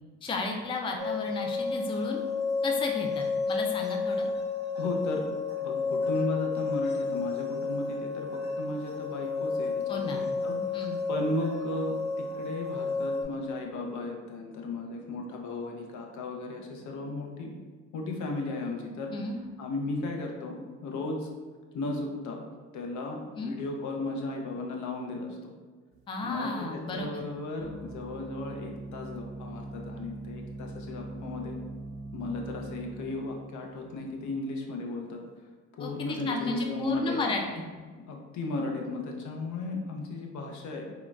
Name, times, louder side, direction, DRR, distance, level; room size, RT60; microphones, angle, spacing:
voice 1, 0.2-2.2 2.6-4.3 9.9-10.2 10.7-11.0 19.1-19.4 23.4-23.6 26.1-27.2 35.8-37.7, left 2 dB, 20° left, 2 dB, 0.3 m, -33 dB
sound 1, 1.0-13.2, left 4 dB, 35° left, 0.9 m, -31 dB
voice 2, 4.8-5.2 5.6-8.3 8.5-10.8 11.1-17.5 17.9-19.1 19.6-21.3 21.7-22.5 22.7-25.5 26.2-31.6 32.1-35.2 35.8-37.2 38.1-40.9, left 2 dB, 75° left, 1 dB, 0.6 m, -35 dB
sound 2, 25.9-26.0 27.6-33.9, right 2 dB, 65° right, 0.5 m, -42 dB
3.7 x 2.1 x 2.3 m, 1.5 s
cardioid pair, 90°, 30 cm